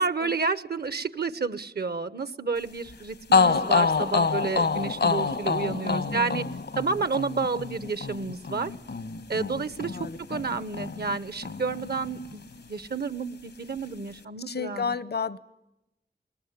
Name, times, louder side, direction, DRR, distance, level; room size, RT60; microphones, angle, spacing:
voice 1, 0.0-6.4 6.8-8.7 9.3-14.8, right 4 dB, 70° right, 15 dB, 1.0 m, -30 dB
sound 1, 2.9-3.0 3.3-11.2 11.4-12.6, left 4 dB, 90° left, 1.3 m, -27 dB
voice 2, 5.8-6.6 9.9-10.4 14.5-15.4, left 5 dB, 70° left, 17 dB, 0.8 m, -32 dB
21.0 x 20.5 x 9.5 m, 0.92 s
wide cardioid pair, 65°, 17 cm